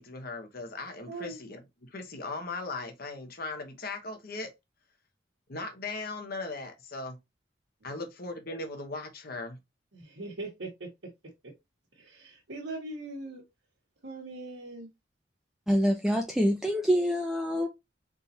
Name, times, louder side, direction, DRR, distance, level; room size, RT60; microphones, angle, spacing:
voice 1, 0.0-1.6 1.9-4.5 5.5-7.2 7.8-9.6, left 3 dB, 55° left, 1.0 m, -38 dB
voice 2, 1.0-1.4 7.8-8.0 9.9-10.9 11.2-11.5 11.9-13.4 14.0-14.9, right 2 dB, 85° right, 1.3 m, -41 dB
voice 3, 15.7-17.7, equal, ahead, 0.5 m, -26 dB
4.0 x 3.7 x 2.7 m
head